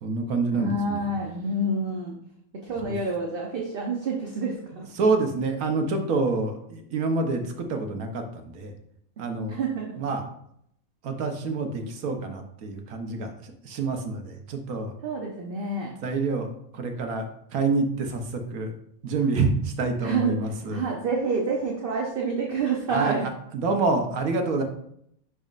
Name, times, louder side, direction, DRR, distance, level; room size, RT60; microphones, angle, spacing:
voice 1, 0.0-1.0 2.8-2.9 5.0-8.7 9.2-9.6 10.0-10.2 11.0-15.0 16.0-16.5 16.7-18.7 19.0-20.8 22.9-23.1 23.5-24.6, right 3 dB, 85° right, 5 dB, 1.4 m, -27 dB
voice 2, 0.5-2.2 2.6-4.9 9.5-10.0 15.0-15.9 19.2-19.3 20.0-20.4 20.7-23.3 24.6-24.7, right 3 dB, 45° right, -1 dB, 0.9 m, -28 dB
10.5 x 4.2 x 2.5 m, 0.71 s
omnidirectional pair, 1.5 m